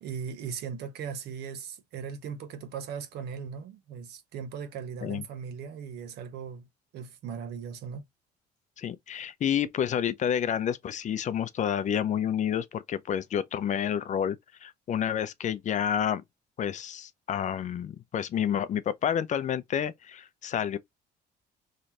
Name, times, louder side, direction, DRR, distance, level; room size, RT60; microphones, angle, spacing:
voice 1, 0.0-6.7 6.9-8.0, right 7 dB, 75° right, 1.2 m, -38 dB
voice 2, 8.8-16.2 16.6-20.8, left 9 dB, 45° left, 0.6 m, -29 dB
3.8 x 3.2 x 2.9 m
cardioid pair, 110°, 17 cm